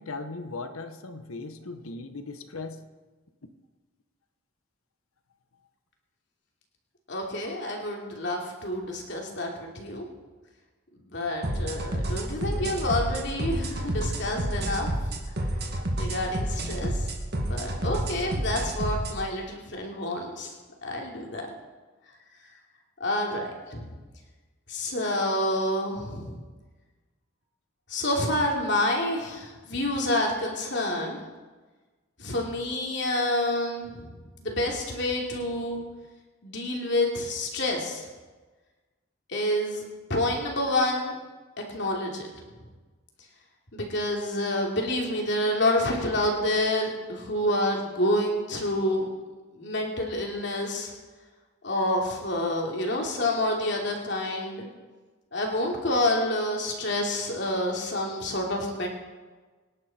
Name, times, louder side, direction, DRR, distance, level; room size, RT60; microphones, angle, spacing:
voice 1, 0.0-2.8, left 3 dB, 85° left, 9 dB, 1.2 m, -38 dB
voice 2, 7.1-10.0 11.1-14.9 16.0-17.0 17.3-20.5 20.8-21.5 23.0-23.8 24.7-26.4 27.9-31.2 32.2-34.1 34.4-35.8 36.4-38.0 39.3-39.8 40.1-41.1 41.7-42.3 43.7-49.1 49.5-50.9 51.6-54.7 55.3-58.9, left 1 dB, 55° left, 0 dB, 3.1 m, -28 dB
sound 1, 11.4-19.2, right 1 dB, 50° right, 2.3 m, -30 dB
25.0 x 11.0 x 4.4 m, 1.3 s
head